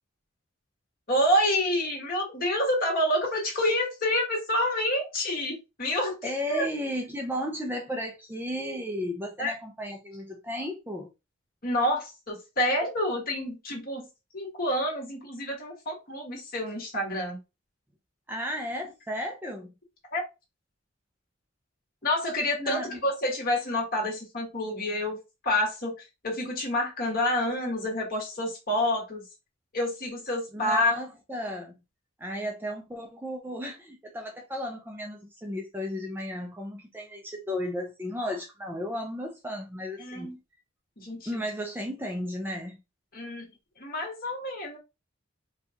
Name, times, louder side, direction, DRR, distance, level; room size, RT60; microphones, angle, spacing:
voice 1, 1.1-6.7 9.4-9.5 11.6-14.1 14.3-17.4 20.1-20.2 22.0-25.2 25.4-25.9 26.2-29.2 29.7-30.9 40.0-40.4 41.0-41.3 43.1-43.5 43.8-44.8, left 1 dB, 45° left, 1.6 m, -28 dB
voice 2, 6.2-11.1 18.3-19.7 22.6-23.1 30.5-31.7 32.2-40.3 41.3-42.8, equal, 10° right, 0.6 m, -34 dB
4.4 x 2.4 x 2.8 m
head